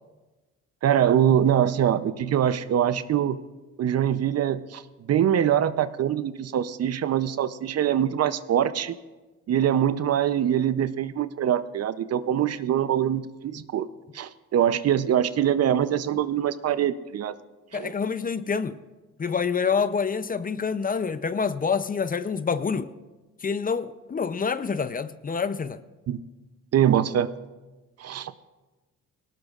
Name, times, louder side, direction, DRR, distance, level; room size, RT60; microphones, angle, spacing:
voice 1, 0.8-3.4 3.8-4.8 5.1-9.0 9.5-13.9 14.1-17.3 17.7-17.9 26.1-26.2 26.7-27.3 28.0-28.3, right 10 dB, 55° right, 13 dB, 0.7 m, -23 dB
voice 2, 17.7-18.8 19.2-22.9 23.4-25.8, left 5 dB, 30° left, 13 dB, 0.6 m, -27 dB
19.5 x 18.0 x 2.5 m, 1.2 s
cardioid pair, 90°, 30 cm